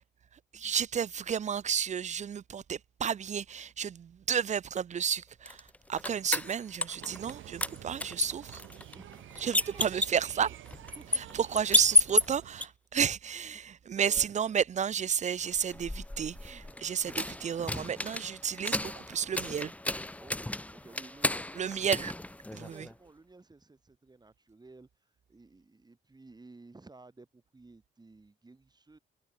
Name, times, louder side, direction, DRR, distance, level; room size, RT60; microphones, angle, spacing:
voice 1, 0.3-8.6 9.4-10.5 11.1-19.7 21.6-22.1 22.5-22.9, right 8 dB, 35° right, 0.5 m, -32 dB
sound 1, 5.5-7.3 7.6-12.7 15.4-22.9, left 1 dB, 5° left, 0.8 m, -32 dB
sound 2, 7.0-12.7, right 13 dB, 80° right, 2.6 m, -49 dB
voice 2, 8.9-10.0 11.0-11.2 11.5-11.7 13.9-14.3 20.2-22.1 22.6-29.0, right 3 dB, 20° right, 3.9 m, -54 dB
cardioid pair, 90°, 20 cm